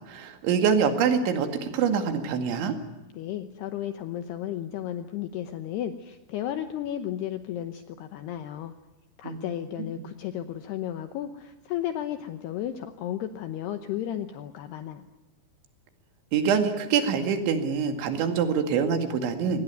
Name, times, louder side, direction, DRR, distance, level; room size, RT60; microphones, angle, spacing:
voice 1, 0.1-2.8 9.2-9.4 16.3-19.6, right 6 dB, 70° right, 7 dB, 4.5 m, -25 dB
voice 2, 3.1-8.7 9.2-15.1, left 11 dB, 75° left, 9 dB, 2.6 m, -33 dB
24.0 x 19.5 x 9.1 m, 1.0 s
omnidirectional pair, 5.6 m